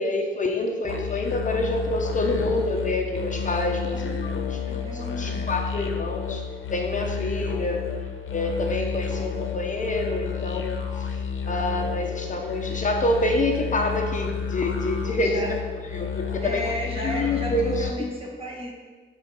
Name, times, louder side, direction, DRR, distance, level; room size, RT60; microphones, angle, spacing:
voice 1, 0.0-4.6 4.9-6.4 6.7-7.9 8.3-15.4 15.9-16.6 17.0-17.9, left 2 dB, 40° left, 2 dB, 0.7 m, -27 dB
sound 1, 0.9-17.9, left 6 dB, 85° left, 0.8 m, -31 dB
voice 2, 3.9-5.4 15.2-15.5 16.4-18.7, equal, 30° right, -2 dB, 1.6 m, -33 dB
8.0 x 3.9 x 5.6 m, 1.4 s
wide cardioid pair, 125°, 20 cm